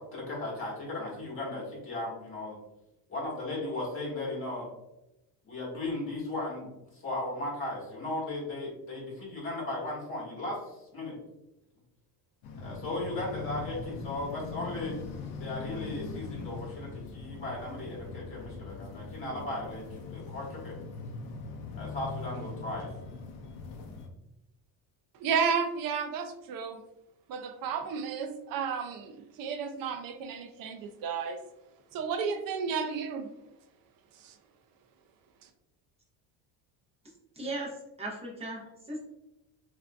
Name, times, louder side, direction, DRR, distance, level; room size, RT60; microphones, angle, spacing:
voice 1, 0.0-2.6 3.1-4.7 5.4-11.1 12.6-15.0 15.4-20.7 21.7-22.9, left 2 dB, 30° left, -4 dB, 1.3 m, -36 dB
sound 1, 12.4-24.1, left 4 dB, 70° left, 0.6 m, -41 dB
voice 2, 25.2-26.8 27.3-29.1 29.4-31.4 31.9-33.3 34.2-34.3, right 6 dB, 50° right, 7 dB, 0.4 m, -32 dB
voice 3, 37.4-37.7 38.0-39.0, right 2 dB, 15° right, -4 dB, 0.7 m, -37 dB
3.4 x 2.6 x 2.2 m, 0.91 s
cardioid pair, 150°, 45 cm